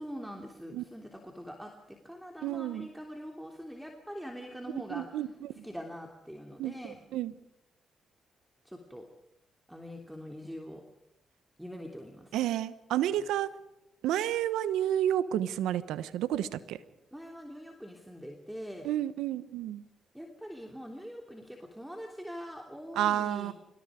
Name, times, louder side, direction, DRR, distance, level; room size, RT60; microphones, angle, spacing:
voice 1, 0.0-5.2 5.5-7.0 8.6-9.1 9.7-10.8 11.6-12.4 17.1-18.9 20.1-23.5, equal, 5° right, 3 dB, 3.2 m, -43 dB
voice 2, 2.4-2.9 4.9-5.3 5.6-5.7 6.6-7.3 12.3-13.5 14.0-16.8 18.8-19.8 23.0-23.5, right 11 dB, 85° right, 15 dB, 1.1 m, -30 dB
26.0 x 20.5 x 5.2 m, 0.87 s
supercardioid pair, 55°, 0 cm